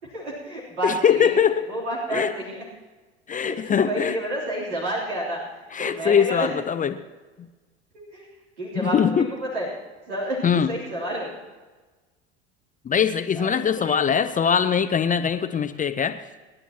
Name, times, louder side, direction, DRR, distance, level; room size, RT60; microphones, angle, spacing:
voice 1, 0.0-1.3 1.7-2.6 3.3-5.4 5.8-6.5 8.1-8.3 8.6-9.7 10.1-11.4 13.3-14.0, right 1 dB, 80° right, -6 dB, 3.4 m, -30 dB
voice 2, 0.8-1.6 2.1-2.3 3.3-4.2 5.7-7.0 8.8-9.3 10.4-10.7 12.8-16.2, left 7 dB, 25° left, 10 dB, 0.7 m, -22 dB
27.5 x 11.0 x 2.9 m, 1.3 s
figure-of-eight pair, 70°, 35 cm